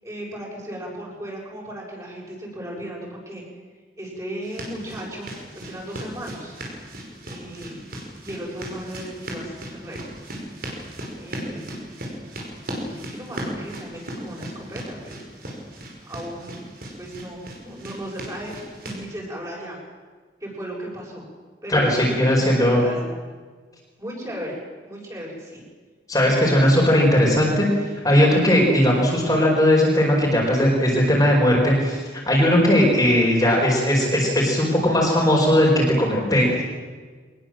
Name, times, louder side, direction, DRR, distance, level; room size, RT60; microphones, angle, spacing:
voice 1, 0.0-3.4 4.0-6.6 7.2-7.9 8.2-10.0 11.1-11.8 12.7-15.1 16.0-16.7 17.0-18.5 18.8-19.8 20.4-21.2 21.6-23.0 24.0-24.6 24.9-25.6 26.2-26.5, right 1 dB, 20° right, -3 dB, 7.2 m, -36 dB
sound 1, 4.4-19.0, right 1 dB, 50° right, 5.5 m, -37 dB
voice 2, 21.7-22.8 26.1-27.7 28.0-36.6, equal, 20° left, -3 dB, 4.7 m, -18 dB
23.5 x 20.5 x 7.7 m, 1.5 s
head